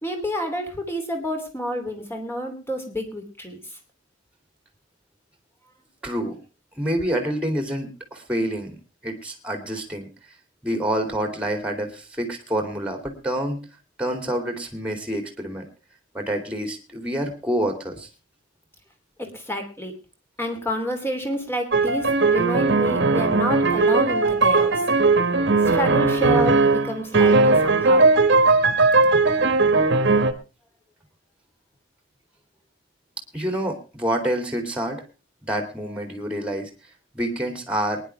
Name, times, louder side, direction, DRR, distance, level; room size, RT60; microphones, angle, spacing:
voice 1, 0.0-3.8 19.2-19.9 20.4-24.8 25.6-28.1, equal, 15° left, 4 dB, 2.9 m, -29 dB
voice 2, 6.0-6.4 6.8-8.8 9.0-10.1 10.6-13.6 14.0-15.6 16.1-18.1 29.0-29.1 33.3-35.0 35.5-36.7 37.1-38.0, right 1 dB, 5° right, 6 dB, 2.6 m, -27 dB
sound 1, 21.7-30.3, right 3 dB, 65° right, 1.4 m, -18 dB
23.0 x 10.5 x 3.3 m, 0.31 s
head